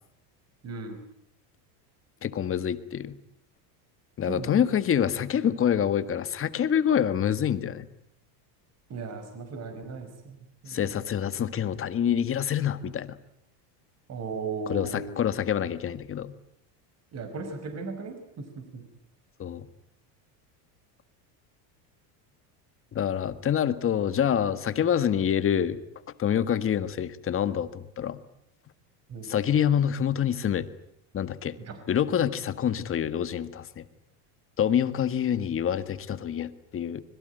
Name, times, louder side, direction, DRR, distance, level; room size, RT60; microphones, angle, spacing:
voice 1, 0.6-1.0 4.2-4.6 8.9-10.4 10.6-10.8 14.1-15.2 17.1-18.4 18.7-18.8 29.1-29.3 31.6-31.8, right 4 dB, 30° right, 7 dB, 5.2 m, -36 dB
voice 2, 2.2-3.2 4.2-7.9 10.7-13.2 14.7-16.3 19.4-19.7 22.9-25.8 26.2-28.2 29.2-30.7 31.1-31.5 31.9-33.8 34.6-37.0, left 9 dB, 25° left, 12 dB, 1.6 m, -26 dB
25.5 x 22.0 x 9.2 m, 0.72 s
supercardioid pair, 135°, 48 cm